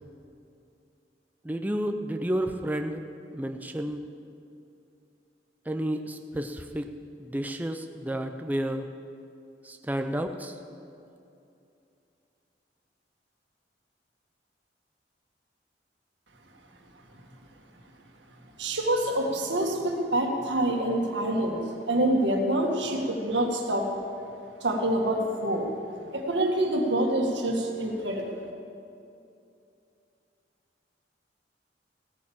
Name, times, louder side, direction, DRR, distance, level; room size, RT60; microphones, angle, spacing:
voice 1, 1.4-3.0 3.3-4.0 5.7-6.9 7.2-8.9 9.6-10.6, right 1 dB, 10° right, 5 dB, 0.5 m, -31 dB
voice 2, 18.6-23.9 24.6-25.7 26.1-28.3, right 1 dB, 80° right, 1 dB, 1.9 m, -26 dB
16.0 x 8.9 x 7.3 m, 2.6 s
head